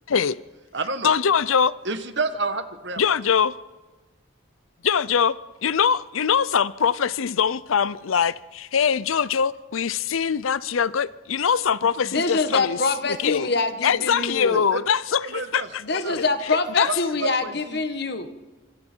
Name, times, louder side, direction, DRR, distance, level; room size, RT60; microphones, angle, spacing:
voice 1, 0.1-0.4 1.0-1.8 3.0-3.5 4.8-12.8 13.1-13.5 13.8-16.0 16.8-16.9, left 7 dB, 85° left, 0.6 m, -22 dB
voice 2, 0.7-1.1 1.8-3.1 14.5-14.8 15.2-15.7 16.0-16.2 16.9-17.8, right 3 dB, 60° right, 1.4 m, -30 dB
voice 3, 11.8-14.6 15.8-18.3, left 3 dB, 55° left, 1.6 m, -25 dB
26.0 x 24.5 x 4.5 m
head